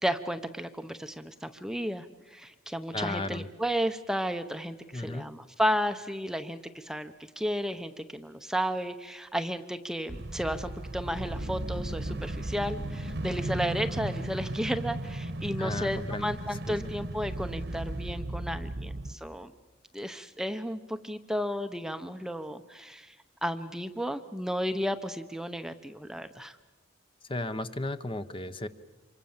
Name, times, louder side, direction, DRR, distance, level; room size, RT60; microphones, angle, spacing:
voice 1, 0.0-19.5 19.9-23.1 23.4-26.6, equal, 5° right, 9 dB, 0.8 m, -33 dB
voice 2, 2.9-3.5 4.9-5.3 15.6-16.3 16.7-16.9 27.2-28.7, left 2 dB, 25° left, 11 dB, 0.9 m, -34 dB
sound 1, 10.1-19.1, right 1 dB, 55° right, 1.2 m, -35 dB
27.5 x 24.5 x 7.2 m, 1.1 s
head